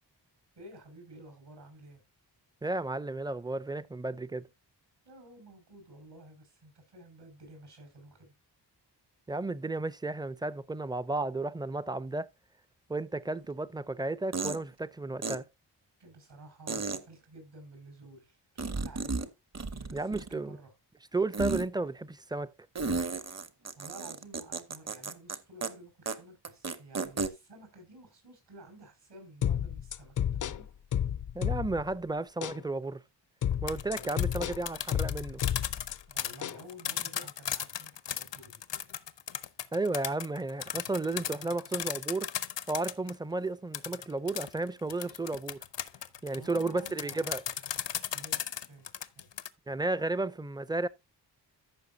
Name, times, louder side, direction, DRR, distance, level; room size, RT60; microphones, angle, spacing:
voice 1, 0.6-2.0 5.0-8.3 16.0-19.3 19.7-20.7 23.2-23.4 23.8-30.1 30.4-30.7 33.9-34.2 36.1-38.6 46.4-47.4 48.1-48.9 49.1-49.3, right 1 dB, 70° right, 6.0 m, -52 dB
voice 2, 2.6-4.5 9.3-12.3 12.9-15.5 19.9-20.6 21.1-22.5 31.3-33.0 33.6-35.4 39.7-42.3 42.7-45.6 46.2-47.4 49.7-50.9, right 2 dB, 10° right, 0.5 m, -33 dB
sound 1, 13.4-13.5 14.3-14.6 15.2-15.4 16.7-17.0 18.6-19.3 19.5-20.5 21.3-21.7 22.8-25.4 25.6-25.7 26.1-26.2 26.5-27.3, right 4 dB, 35° right, 1.0 m, -33 dB
sound 2, 29.4-31.9 32.4-32.6 33.4-36.0 36.4-36.6, left 9 dB, 50° left, 0.4 m, -31 dB
sound 3, 33.5-43.2 43.7-49.5, left 10 dB, 85° left, 0.8 m, -36 dB
14.5 x 6.2 x 2.7 m
wide cardioid pair, 100°, 42 cm